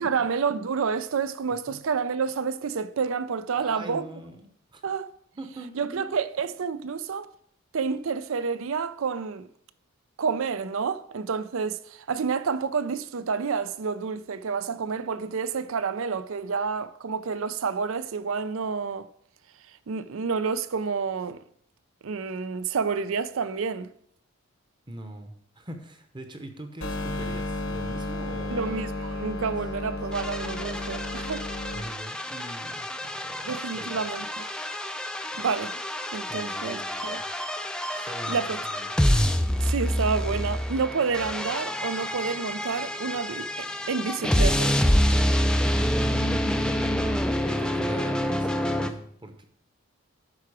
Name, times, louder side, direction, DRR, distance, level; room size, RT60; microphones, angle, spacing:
voice 1, 0.0-4.0 4.8-5.1 5.8-7.3 7.7-9.5 10.2-19.1 19.9-21.4 22.0-23.9 28.5-31.5 33.4-34.4 35.4-35.7 36.1-37.2 38.0-38.6 39.6-44.8, right 5 dB, 70° right, 0.5 m, -29 dB
voice 2, 3.6-4.8 5.3-6.2 24.9-28.9 31.7-34.0 35.3-35.5 36.3-37.2 38.0-38.9 45.6-46.7 47.4-49.4, right 1 dB, 20° right, 0.9 m, -41 dB
sound 1, 26.8-31.8, left 2 dB, 70° left, 1.2 m, -33 dB
sound 2, 30.1-48.9, equal, 5° left, 0.4 m, -27 dB
11.5 x 4.7 x 4.9 m
head